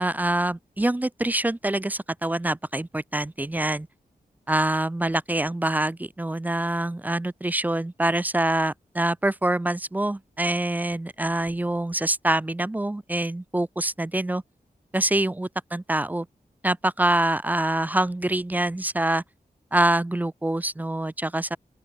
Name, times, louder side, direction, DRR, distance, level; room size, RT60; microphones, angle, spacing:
voice 1, 0.0-3.9 4.5-14.4 14.9-16.3 16.6-19.2 19.7-21.6, right 1 dB, 10° right, 0.4 m, -25 dB
open air
wide cardioid pair, 135°, 15 cm